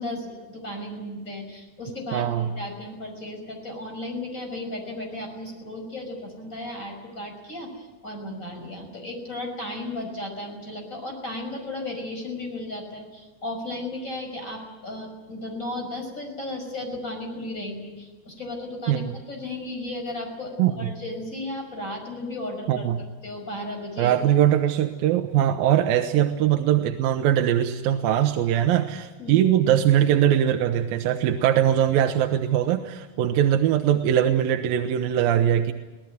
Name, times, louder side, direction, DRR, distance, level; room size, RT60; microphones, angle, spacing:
voice 1, 0.0-22.9 23.2-24.1 29.2-29.4, left 1 dB, 20° left, 2 dB, 5.8 m, -35 dB
voice 2, 2.1-2.5 18.9-19.1 20.6-20.9 22.7-23.0 24.0-35.7, right 11 dB, 75° right, 5 dB, 2.5 m, -21 dB
23.5 x 18.0 x 9.6 m, 1.2 s
omnidirectional pair, 4.7 m